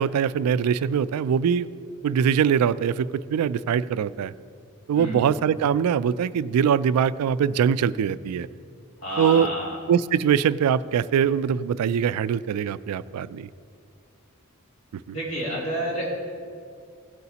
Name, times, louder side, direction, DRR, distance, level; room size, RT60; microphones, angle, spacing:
voice 1, 0.0-1.7 2.0-4.3 4.9-8.5 9.2-9.5 9.9-13.5 15.1-15.2, right 8 dB, 90° right, 17 dB, 0.3 m, -22 dB
voice 2, 4.9-5.3 9.0-9.8 15.1-16.1, equal, 70° left, -5 dB, 2.9 m, -29 dB
17.0 x 8.1 x 2.9 m, 2.3 s
head